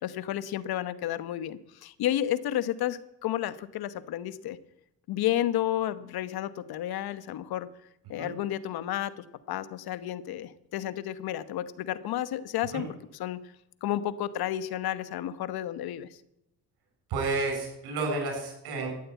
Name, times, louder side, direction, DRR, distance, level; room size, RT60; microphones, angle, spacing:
voice 1, 0.0-4.6 5.1-7.7 8.1-12.9 13.1-13.4 13.8-16.2, left 12 dB, 70° left, 14 dB, 1.1 m, -31 dB
voice 2, 17.1-18.9, right 3 dB, 75° right, 2 dB, 7.1 m, -31 dB
13.5 x 9.5 x 8.3 m, 0.83 s
supercardioid pair, 75°, 39 cm